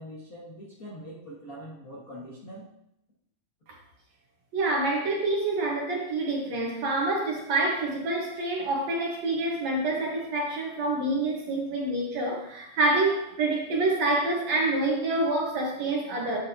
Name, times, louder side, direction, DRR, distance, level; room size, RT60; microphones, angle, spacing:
voice 1, 0.0-2.7, equal, 45° left, -7 dB, 1.1 m, -43 dB
voice 2, 4.5-16.4, right 2 dB, 60° right, -1 dB, 2.1 m, -27 dB
9.5 x 8.9 x 2.8 m, 0.80 s
omnidirectional pair, 3.9 m